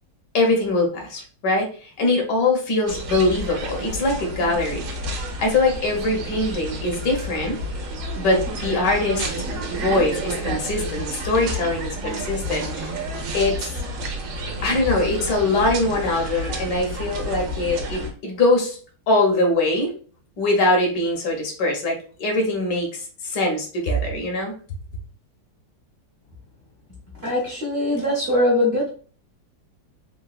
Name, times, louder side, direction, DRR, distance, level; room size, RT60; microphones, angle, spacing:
voice 1, 0.3-5.0 5.4-7.6 8.2-9.3 9.7-13.0 13.3-13.7 14.6-18.8 19.1-19.9 20.4-24.6, left 2 dB, 70° left, 1 dB, 1.4 m, -22 dB
sound 1, 2.9-18.1, right 1 dB, 80° right, 1.4 m, -30 dB
voice 2, 27.2-28.9, left 1 dB, 50° right, -4 dB, 0.8 m, -21 dB
3.8 x 2.2 x 2.3 m, 0.40 s
omnidirectional pair, 2.0 m